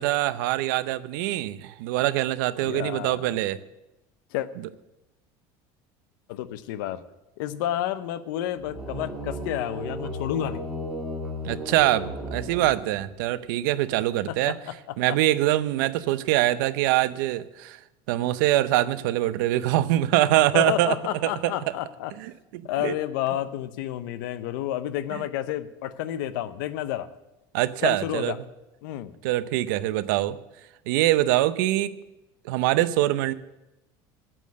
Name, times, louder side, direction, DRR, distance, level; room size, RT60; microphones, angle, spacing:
voice 1, 0.0-3.6 11.4-14.6 15.0-17.8 18.1-21.0 21.2-21.5 22.2-22.9 25.1-25.2 27.5-28.3 29.2-30.4 30.9-32.0 32.4-33.3, right 15 dB, 80° right, 14 dB, 0.7 m, -24 dB
voice 2, 2.6-3.4 4.3-4.5 6.3-7.0 7.4-10.6 14.3-14.7 15.1-15.2 20.5-22.1 22.6-27.1 27.8-28.4 28.8-29.1, left 12 dB, 90° left, 13 dB, 0.8 m, -30 dB
sound 1, 8.6-13.3, equal, 5° right, 1.6 m, -35 dB
8.9 x 8.6 x 9.4 m, 0.96 s
cardioid pair, 175°, 10 cm